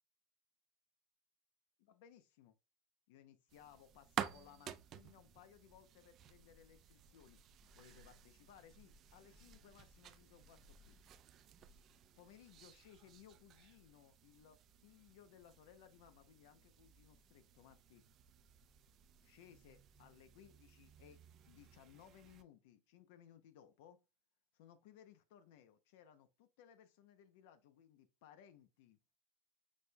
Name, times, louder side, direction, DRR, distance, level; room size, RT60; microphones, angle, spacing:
voice 1, 1.8-2.5 3.1-7.4 7.8-11.0 12.2-18.0 19.2-21.2 21.5-24.0 24.5-29.0, left 10 dB, 70° left, 0.5 m, -63 dB
sound 1, 3.5-22.4, right 10 dB, 35° right, 0.3 m, -53 dB
6.2 x 2.2 x 2.6 m
supercardioid pair, 140°, 0 cm